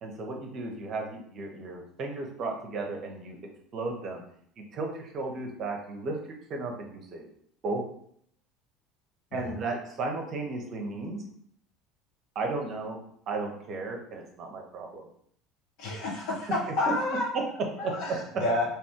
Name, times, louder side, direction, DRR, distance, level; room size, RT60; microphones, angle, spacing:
voice 1, 0.0-3.4 3.7-4.2 4.6-6.1 6.5-7.2 7.6-7.8 9.3-11.2 12.3-13.0 13.3-15.0 17.3-17.4 17.8-18.2, right 3 dB, 40° right, 1 dB, 0.7 m, -34 dB
voice 2, 15.8-17.3 17.8-18.6, left 2 dB, 55° left, -2 dB, 0.9 m, -29 dB
2.6 x 2.5 x 3.6 m, 0.65 s
figure-of-eight pair, 65°, 0 cm